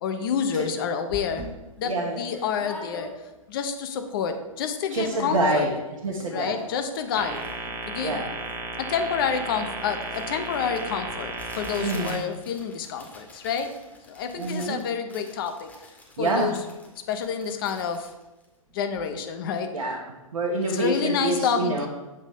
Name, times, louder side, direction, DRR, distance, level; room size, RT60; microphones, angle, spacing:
voice 1, 0.0-1.4 1.8-3.1 3.5-5.7 6.3-7.5 7.9-8.2 8.8-13.7 14.1-15.7 16.2-16.6 17.1-18.1 18.7-19.7 20.7-21.9, left 7 dB, 40° left, 7 dB, 0.8 m, -28 dB
sound 1, 0.6-0.7 1.1-3.5 3.9-4.0 4.2-4.7 5.0-5.8 6.0-19.1, left 2 dB, 10° left, 1.2 m, -45 dB
voice 2, 1.8-2.2 4.9-6.6 8.0-8.3 11.8-12.2 14.3-14.8 16.2-16.5 19.7-20.0 20.3-21.9, right 2 dB, 65° right, 0 dB, 1.1 m, -27 dB
sound 2, 7.2-12.2, right 3 dB, 15° right, 0.8 m, -34 dB
7.5 x 3.1 x 5.3 m, 1.1 s
figure-of-eight pair, 115°, 18 cm